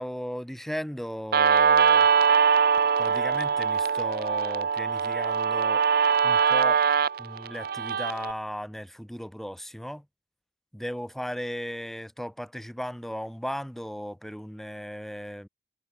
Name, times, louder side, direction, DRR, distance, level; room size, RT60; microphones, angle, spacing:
voice 1, 0.0-2.1 3.0-5.8 6.2-6.8 7.2-10.0 10.7-15.5, equal, ahead, 0.6 m, -36 dB
Guitar, 1.3-8.3, right 6 dB, 50° right, 0.5 m, -22 dB
head